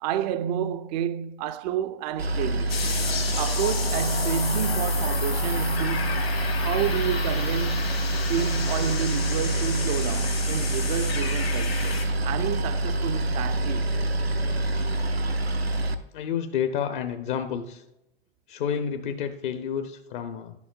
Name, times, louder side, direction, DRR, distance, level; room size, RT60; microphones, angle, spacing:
voice 1, 0.0-2.9 3.4-6.3 6.6-8.0 8.3-13.9, right 9 dB, 45° right, 0.4 m, -30 dB
Boat Water vehicle, 2.2-15.9, right 1 dB, 90° right, 0.7 m, -26 dB
sound 1, 2.7-12.0, left 6 dB, 75° left, 1.9 m, -33 dB
voice 2, 16.1-17.8 18.5-20.5, left 8 dB, 55° left, 0.8 m, -30 dB
11.0 x 7.0 x 2.4 m
figure-of-eight pair, 90°, 30 cm